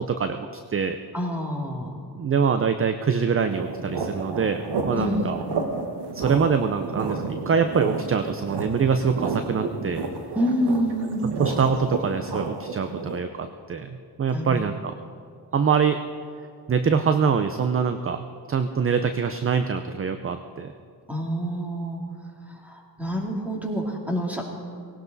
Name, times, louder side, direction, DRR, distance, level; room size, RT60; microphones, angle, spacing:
voice 1, 0.0-1.0 2.2-5.4 6.1-10.0 11.4-14.9 15.5-16.0 16.7-20.7, right 6 dB, 35° right, 8 dB, 0.6 m, -24 dB
voice 2, 1.1-2.0 4.9-5.3 10.3-11.2 14.3-14.5 21.1-22.0 22.5-24.4, equal, 5° right, -1 dB, 2.6 m, -27 dB
sound 1, 3.5-13.2, right 4 dB, 90° right, 1.5 m, -31 dB
18.0 x 17.5 x 4.1 m, 2.3 s
wide cardioid pair, 125°, 39 cm